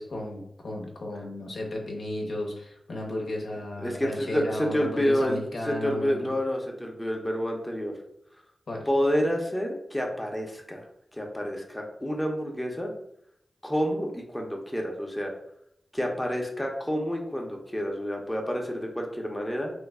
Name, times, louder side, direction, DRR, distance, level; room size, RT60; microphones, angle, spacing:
voice 1, 0.0-6.3 8.7-8.9, left 1 dB, 70° left, -1 dB, 0.7 m, -34 dB
voice 2, 3.8-7.9 8.9-10.8 11.1-12.9 13.6-15.3 15.9-19.7, equal, 15° left, 1 dB, 0.7 m, -29 dB
3.1 x 2.1 x 3.5 m, 0.75 s
cardioid pair, 45°, 0 cm